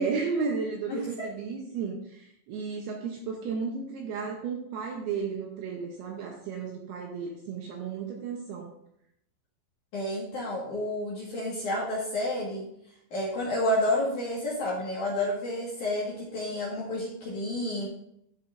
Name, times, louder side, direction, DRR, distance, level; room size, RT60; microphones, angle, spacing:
voice 1, 0.0-8.7, right 5 dB, 75° right, 1 dB, 2.4 m, -33 dB
voice 2, 0.9-1.3 9.9-12.7 13.1-17.9, left 1 dB, 60° left, -6 dB, 2.3 m, -30 dB
12.5 x 4.9 x 2.5 m, 0.75 s
omnidirectional pair, 5.3 m